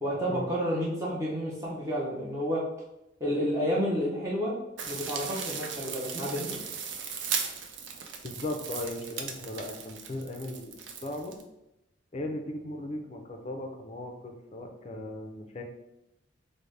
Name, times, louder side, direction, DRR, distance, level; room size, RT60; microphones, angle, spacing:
voice 1, 0.0-2.6 3.2-4.5 4.9-6.6, equal, 15° right, -6 dB, 0.6 m, -30 dB
sound 1, 4.8-11.4, right 6 dB, 75° right, 0.4 m, -37 dB
voice 2, 8.2-10.7 11.0-11.4 12.1-15.6, left 1 dB, 35° left, 4 dB, 0.4 m, -37 dB
3.9 x 2.1 x 3.2 m, 0.90 s
head